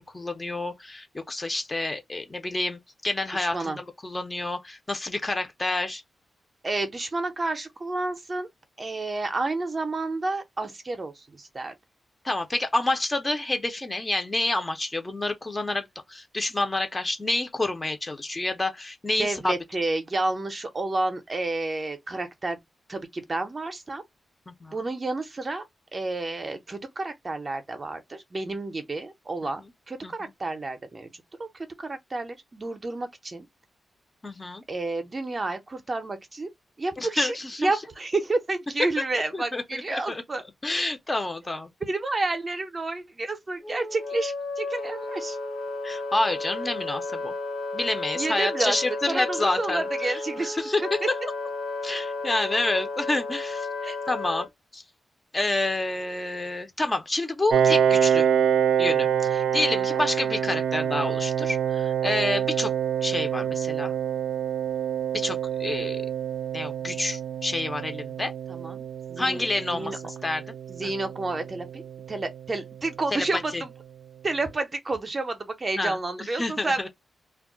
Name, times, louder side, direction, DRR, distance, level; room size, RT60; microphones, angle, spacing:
voice 1, 0.0-6.0 12.2-19.5 24.5-24.8 30.0-30.3 34.2-34.6 37.0-37.7 39.3-40.2 40.6-41.7 45.8-47.3 47.7-51.2 51.8-53.7 54.1-54.5 54.7-54.8 55.3-58.3 58.8-62.7 63.0-63.9 65.1-66.0 66.5-68.3 69.2-70.4 70.8-70.9 73.1-73.2 73.5-73.6 75.8-76.9, left 2 dB, 20° left, 0.5 m, -28 dB
voice 2, 3.3-3.8 6.6-8.5 8.8-11.7 19.2-22.6 22.9-24.0 24.7-25.6 25.9-29.6 29.9-31.1 31.4-31.5 31.8-33.4 34.7-36.5 36.8-40.4 41.8-45.4 48.1-48.8 49.1-50.6 51.0-51.1 53.8-54.0 59.9-60.0 68.5-70.0 70.7-71.8 72.1-73.7 74.2-76.9, right 2 dB, 30° right, 0.5 m, -30 dB
Wind instrument woodwind instrument, 43.6-54.5, left 3 dB, 70° left, 1.1 m, -33 dB
Piano, 57.5-72.9, right 8 dB, 85° right, 0.4 m, -26 dB
2.2 x 2.1 x 3.6 m
wide cardioid pair, 130°, 0 cm